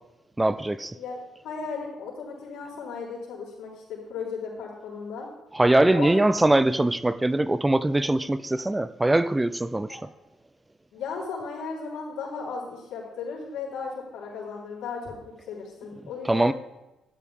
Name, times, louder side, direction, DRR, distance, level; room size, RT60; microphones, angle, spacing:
voice 1, 0.4-1.0 5.5-10.1 16.3-16.5, right 1 dB, 15° right, 0.4 m, -22 dB
voice 2, 1.4-5.3 5.9-6.4 9.9-10.0 10.9-16.5, left 5 dB, 85° left, 3.9 m, -35 dB
12.0 x 10.5 x 3.6 m
cardioid pair, 90°, 0 cm